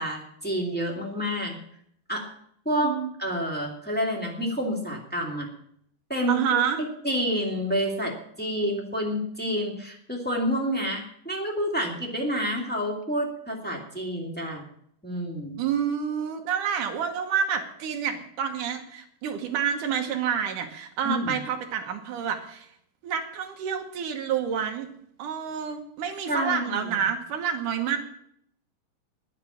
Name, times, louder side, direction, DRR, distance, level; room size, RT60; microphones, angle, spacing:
voice 1, 0.0-1.6 2.1-2.3 2.6-2.9 3.2-5.5 6.1-6.4 7.0-14.6 15.0-15.6 21.0-21.3 26.3-27.0, equal, 5° left, -1 dB, 1.0 m, -28 dB
voice 2, 2.8-3.1 6.3-6.8 15.6-22.7 23.0-24.9 25.2-28.0, right 8 dB, 65° right, 4 dB, 2.2 m, -28 dB
10.5 x 9.9 x 8.6 m, 0.69 s
omnidirectional pair, 5.0 m